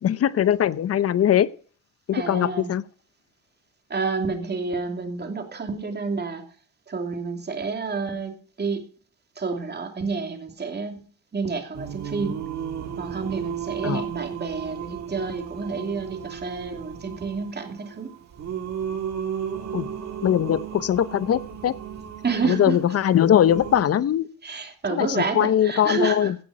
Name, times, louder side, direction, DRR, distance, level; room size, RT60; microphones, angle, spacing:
voice 1, 0.0-1.5 2.1-2.8 13.8-14.0 19.7-19.9 20.2-21.8 22.4-24.3 24.9-26.4, left 10 dB, 50° left, 0.7 m, -21 dB
voice 2, 2.1-2.7 3.9-6.4 6.9-8.9 9.4-11.0 11.3-12.4 13.0-18.1 22.2-22.8 24.4-26.3, right 4 dB, 35° right, 2.8 m, -29 dB
Singing, 11.7-23.8, right 8 dB, 60° right, 2.2 m, -34 dB
16.5 x 6.0 x 4.9 m
cardioid pair, 90°, 30 cm